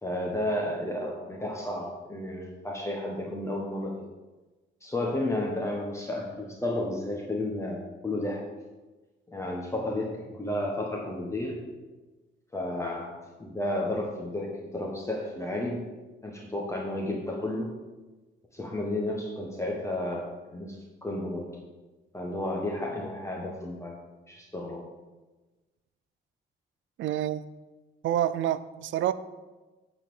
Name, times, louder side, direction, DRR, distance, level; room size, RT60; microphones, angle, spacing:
voice 1, 0.0-4.0 4.8-8.4 9.3-11.6 12.5-15.8 16.2-17.7 18.5-21.5 22.1-24.0 24.3-24.8, left 1 dB, 15° left, -1 dB, 1.4 m, -32 dB
voice 2, 27.0-27.4 28.0-29.1, right 11 dB, 75° right, 15 dB, 0.5 m, -27 dB
8.9 x 4.3 x 7.0 m, 1.2 s
cardioid pair, 90°, 20 cm